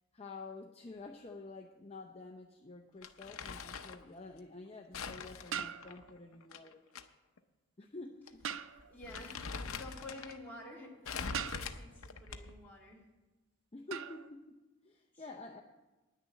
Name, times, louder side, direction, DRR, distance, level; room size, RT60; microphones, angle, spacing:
voice 1, 0.1-6.8 7.8-8.5 13.7-15.6, left 3 dB, 30° left, 2 dB, 0.6 m, -49 dB
Crumpling crinkling, 3.0-4.0 4.9-7.0 7.4-7.5 8.3-8.4 8.8-10.4 11.0-12.7, left 5 dB, 75° left, 0.7 m, -43 dB
sound 1, 3.0-3.2 5.5-6.3 8.4-9.1 11.3-12.0 13.9-14.3, right 8 dB, 65° right, 0.5 m, -41 dB
voice 2, 8.9-13.1 15.1-15.4, left 1 dB, 10° left, -5 dB, 2.3 m, -50 dB
10.0 x 6.7 x 8.3 m, 1.1 s
head